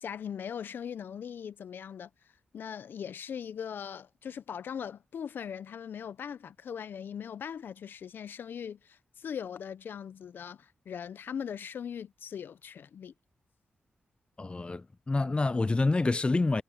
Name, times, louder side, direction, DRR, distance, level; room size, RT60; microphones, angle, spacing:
voice 1, 0.0-2.1 2.5-13.1, left 8 dB, 70° left, 0.8 m, -40 dB
voice 2, 14.4-16.6, left 3 dB, 30° left, 0.5 m, -27 dB
supercardioid pair, 40°, 4 cm